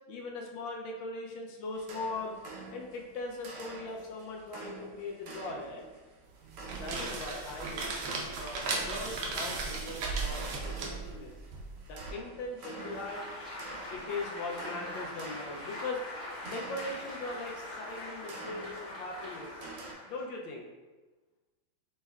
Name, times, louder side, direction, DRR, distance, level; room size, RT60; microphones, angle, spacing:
voice 1, 0.1-2.3 2.7-5.9 6.7-8.1 8.4-11.3 11.9-13.3 13.9-16.0 16.4-19.5 20.1-20.7, left 3 dB, 75° left, 0 dB, 1.2 m, -40 dB
sound 1, 1.7-19.9, right 3 dB, 90° right, 1.7 m, -49 dB
sound 2, 6.4-12.1, right 3 dB, 75° right, 1.3 m, -36 dB
Applause, 12.6-20.3, left 1 dB, 15° left, 1.1 m, -43 dB
5.3 x 3.2 x 2.3 m, 1.2 s
omnidirectional pair, 2.3 m